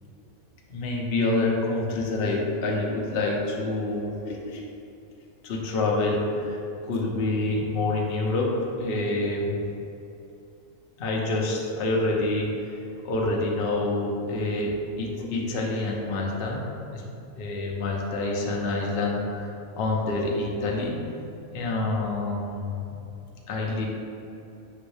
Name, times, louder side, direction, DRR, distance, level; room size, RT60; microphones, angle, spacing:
voice 1, 0.7-4.6 5.4-6.6 6.9-8.5 8.8-9.6 11.0-12.5 13.0-16.6 16.9-17.0 17.4-21.0 21.5-23.0 23.5-23.9, left 2 dB, 55° left, -2 dB, 0.7 m, -27 dB
6.1 x 2.6 x 3.2 m, 2.6 s
omnidirectional pair, 1.5 m